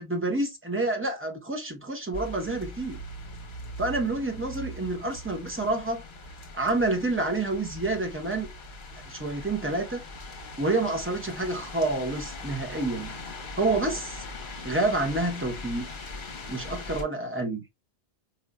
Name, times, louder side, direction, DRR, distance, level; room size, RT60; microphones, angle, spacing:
voice 1, 0.0-3.0 3.8-6.0 6.5-8.5 9.1-10.0 10.6-13.1 13.6-14.2 14.6-15.9 16.5-17.6, right 2 dB, 15° right, 0.7 m, -28 dB
sound 1, 2.1-17.0, left 2 dB, 55° left, 1.0 m, -40 dB
5.0 x 2.5 x 2.2 m
omnidirectional pair, 1.1 m